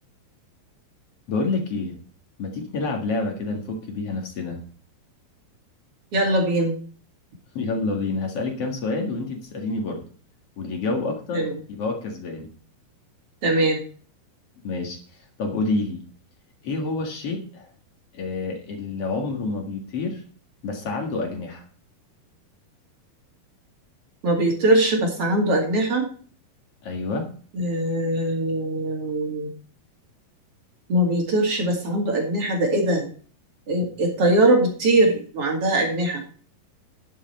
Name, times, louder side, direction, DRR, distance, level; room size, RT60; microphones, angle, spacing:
voice 1, 1.3-2.0 2.4-4.6 7.5-10.1 10.6-12.5 14.6-15.0 15.4-16.0 16.6-17.7 18.1-20.2 20.6-21.7 26.8-27.3, left 3 dB, 45° left, 2 dB, 2.3 m, -28 dB
voice 2, 6.1-6.7 11.3-11.5 13.4-13.8 24.2-26.1 27.5-29.5 30.9-33.1 33.7-36.2, right 1 dB, 45° right, 1 dB, 2.8 m, -21 dB
11.0 x 7.7 x 4.4 m, 0.43 s
omnidirectional pair, 4.5 m